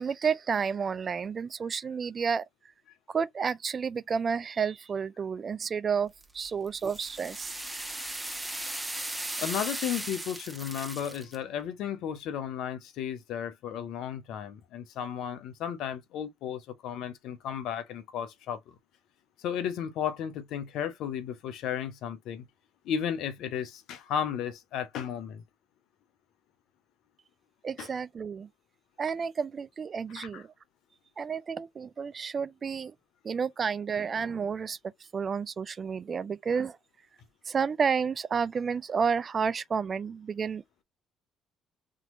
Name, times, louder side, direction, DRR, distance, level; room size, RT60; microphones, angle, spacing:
voice 1, 0.0-2.4 3.1-7.6 27.6-28.5 29.0-30.5 31.2-32.9 33.2-34.8 35.1-36.8 37.5-40.8, right 6 dB, 45° right, 0.3 m, -31 dB
sound 1, 6.2-11.4, right 1 dB, 10° right, 1.1 m, -37 dB
voice 2, 9.4-18.7 19.4-22.5 22.8-25.4 27.8-27.9 30.2-30.4, left 9 dB, 70° left, 0.8 m, -34 dB
3.7 x 2.9 x 2.5 m
hypercardioid pair, 50°, 0 cm